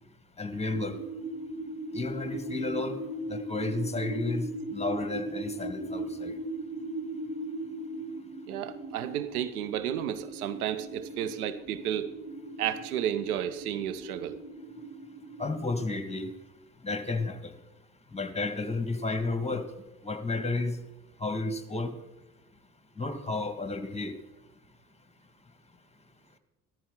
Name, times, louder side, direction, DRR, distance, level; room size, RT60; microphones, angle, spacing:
voice 1, 0.4-1.0 1.9-3.0 3.3-6.3 15.4-16.3 16.8-17.5 18.1-19.6 20.0-20.8 21.2-21.9 23.0-24.1, left 3 dB, 15° left, 9 dB, 1.6 m, -32 dB
sound 1, 0.7-15.7, right 1 dB, 10° right, 5.1 m, -38 dB
voice 2, 8.5-12.1 12.6-14.4, right 10 dB, 80° right, 14 dB, 0.8 m, -32 dB
14.5 x 14.0 x 3.7 m, 0.99 s
hypercardioid pair, 55°, 43 cm